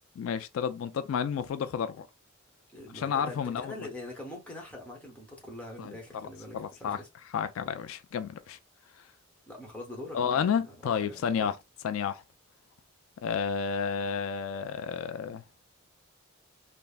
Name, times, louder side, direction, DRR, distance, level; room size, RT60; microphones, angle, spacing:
voice 1, 0.2-2.1 2.9-3.7 5.8-5.9 6.5-7.0 7.3-8.6 10.1-11.6 11.8-12.2 13.2-15.4, left 7 dB, 75° left, 0.3 m, -31 dB
voice 2, 2.7-7.1 9.5-11.5, left 1 dB, 5° left, 0.9 m, -44 dB
3.4 x 2.0 x 2.4 m
head